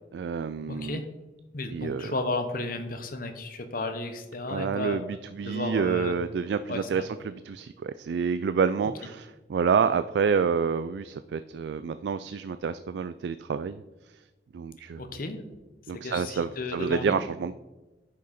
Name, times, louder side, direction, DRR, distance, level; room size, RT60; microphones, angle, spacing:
voice 1, 0.1-1.0 1.7-2.1 4.5-13.8 14.5-15.0 15.9-17.5, right 6 dB, 70° right, 12 dB, 0.3 m, -28 dB
voice 2, 0.7-1.0 1.5-5.0 5.4-6.2 6.7-7.1 15.0-15.4 16.0-17.2, left 2 dB, 55° left, 7 dB, 1.0 m, -33 dB
9.7 x 6.3 x 4.2 m, 1.1 s
head